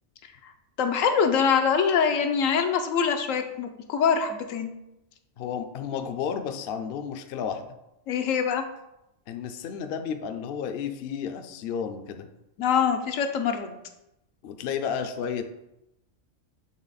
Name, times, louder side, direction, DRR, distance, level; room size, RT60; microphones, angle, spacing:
voice 1, 0.8-4.7 8.1-8.6 12.6-13.8, left 6 dB, 80° left, 6 dB, 1.0 m, -24 dB
voice 2, 5.4-7.7 9.3-12.3 14.4-15.4, left 7 dB, 60° left, 7 dB, 0.7 m, -32 dB
7.4 x 3.3 x 4.0 m, 0.90 s
omnidirectional pair, 1.4 m